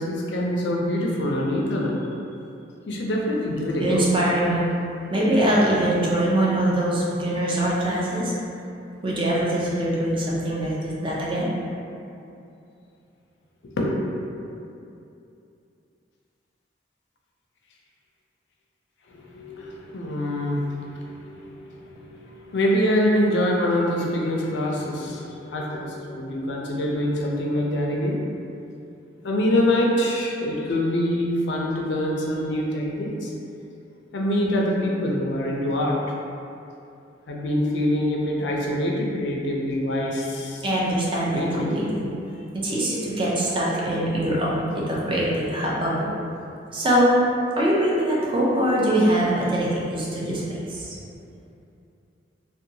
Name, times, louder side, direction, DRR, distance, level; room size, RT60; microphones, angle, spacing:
voice 1, 0.0-2.0 2.9-4.1 13.6-13.9 19.1-28.2 29.2-33.3 34.1-36.0 37.3-40.7 41.3-41.7 44.7-45.1, left 1 dB, 70° left, -2 dB, 0.4 m, -25 dB
voice 2, 3.8-4.7 5.1-8.3 9.0-11.5 40.6-42.1 42.5-46.1 46.7-47.2 47.5-51.0, right 1 dB, 30° right, -5 dB, 0.4 m, -23 dB
2.7 x 2.2 x 2.6 m, 2.7 s
head